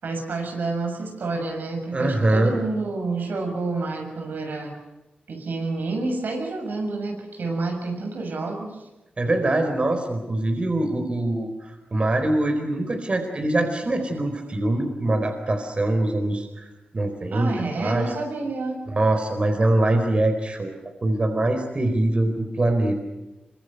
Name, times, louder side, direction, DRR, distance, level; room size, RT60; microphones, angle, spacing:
voice 1, 0.0-4.8 5.3-8.8 17.3-18.8, right 3 dB, 85° right, 2 dB, 7.1 m, -29 dB
voice 2, 1.9-2.5 9.2-16.7 16.9-18.1 18.9-23.0, right 1 dB, 35° right, 5 dB, 4.2 m, -23 dB
26.5 x 24.5 x 6.6 m, 1.1 s
wide cardioid pair, 105°, 3 cm